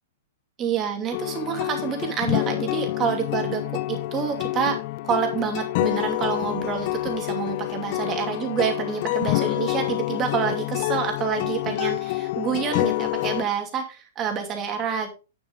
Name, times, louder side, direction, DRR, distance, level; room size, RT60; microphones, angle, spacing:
voice 1, 0.6-15.1, right 7 dB, 25° right, 4 dB, 2.6 m, -28 dB
sound 1, 1.1-13.4, left 19 dB, 45° left, 0.4 m, -27 dB
9.0 x 7.1 x 3.6 m, 0.31 s
hypercardioid pair, 140°, 0 cm